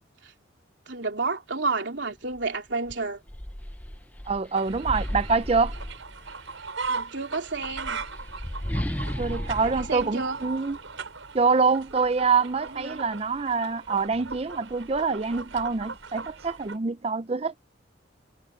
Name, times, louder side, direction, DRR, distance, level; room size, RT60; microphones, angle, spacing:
voice 1, 0.9-3.2 6.9-8.0 9.6-10.4 12.7-13.0, right 3 dB, 65° right, 3.5 m, -31 dB
sound 1, 2.3-2.5 2.9-6.5 7.4-11.1, equal, 10° left, 0.6 m, -35 dB
voice 2, 4.3-5.7 9.2-10.8 11.3-17.6, right 4 dB, 30° right, 0.5 m, -25 dB
sound 2, 4.5-16.8, right 4 dB, 85° right, 5.8 m, -39 dB
head